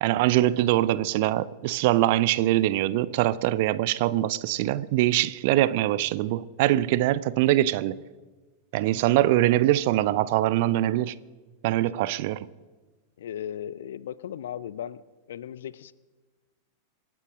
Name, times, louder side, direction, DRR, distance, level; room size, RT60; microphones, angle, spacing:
voice 1, 0.0-8.0 8.7-11.1 11.6-12.5, right 15 dB, 50° right, 0.6 m, -23 dB
voice 2, 13.2-15.0 15.3-15.9, left 10 dB, 60° left, 0.5 m, -36 dB
26.5 x 9.6 x 5.1 m
figure-of-eight pair, 90°, 0 cm